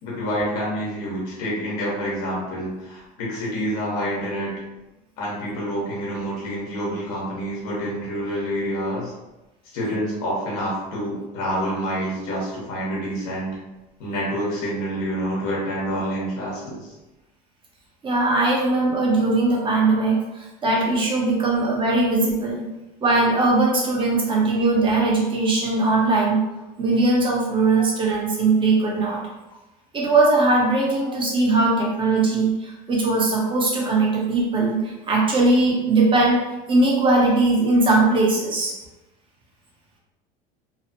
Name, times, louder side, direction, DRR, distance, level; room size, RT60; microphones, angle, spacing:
voice 1, 0.0-4.5 5.2-9.1 9.7-13.6 14.0-16.9 21.4-21.5 23.6-23.7 27.7-27.9 31.2-31.3 34.8-34.9, equal, 80° left, -5 dB, 1.3 m, -27 dB
voice 2, 18.0-22.6 23.0-26.4 26.8-29.2 29.9-36.4 36.7-38.7, right 2 dB, 25° right, -3 dB, 0.9 m, -20 dB
3.1 x 2.1 x 2.9 m, 1.0 s
supercardioid pair, 110°, 20 cm